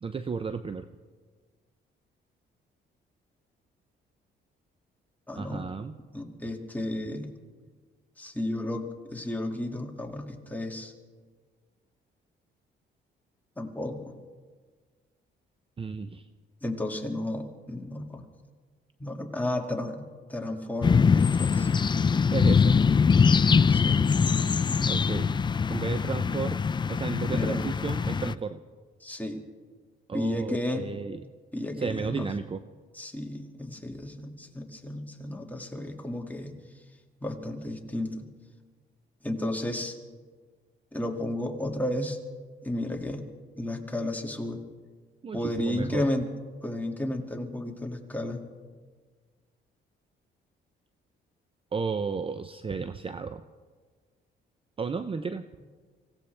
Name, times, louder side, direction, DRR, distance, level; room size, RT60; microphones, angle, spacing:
voice 1, 0.0-0.9 5.4-5.9 15.8-16.3 22.3-22.8 24.9-25.4 25.7-26.6 26.9-28.6 30.1-31.2 31.8-32.6 45.2-46.1 51.7-53.4 54.8-55.4, right 5 dB, 25° right, 10 dB, 0.6 m, -33 dB
voice 2, 5.3-5.7 6.1-7.3 8.2-10.9 13.6-14.1 16.6-18.3 19.0-21.7 23.7-24.0 27.3-27.6 29.0-29.4 30.1-30.9 31.5-32.3 33.0-36.6 37.2-38.3 39.2-40.0 40.9-42.2 42.6-43.2 43.6-44.6 45.3-46.3 46.6-48.4, left 1 dB, 10° left, 2 dB, 2.1 m, -33 dB
sound 1, 20.8-28.3, left 5 dB, 25° left, 0.4 m, -23 dB
25.5 x 16.5 x 3.4 m, 1.5 s
cardioid pair, 90°, 20 cm